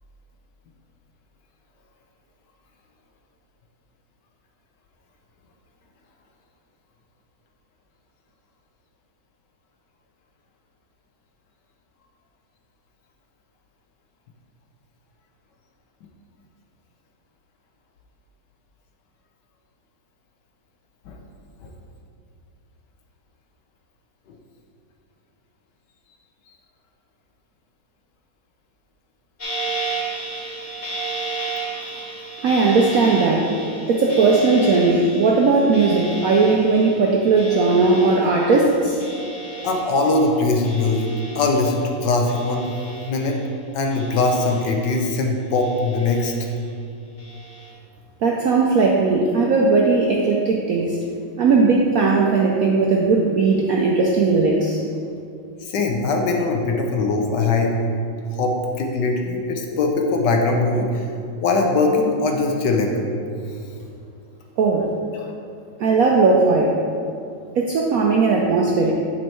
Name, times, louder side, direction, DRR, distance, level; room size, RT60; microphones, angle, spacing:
sound 1, 29.4-42.0 42.3-43.5 43.9-45.1 45.5-46.6 47.2-47.7, right 3 dB, 30° left, 1.0 m, -33 dB
voice 1, 31.4-31.8 39.6-41.1 41.3-42.7 43.1-43.4 43.7-46.3 55.6-57.7 58.3-61.1 61.4-62.9, left 3 dB, 65° left, 2 dB, 1.3 m, -21 dB
voice 2, 32.4-33.5 33.9-39.0 48.2-51.0 51.4-54.8 64.6-64.9 65.8-66.7 67.5-68.9, right 3 dB, 70° right, -1 dB, 0.8 m, -18 dB
9.1 x 4.5 x 4.4 m, 2.5 s
omnidirectional pair, 2.2 m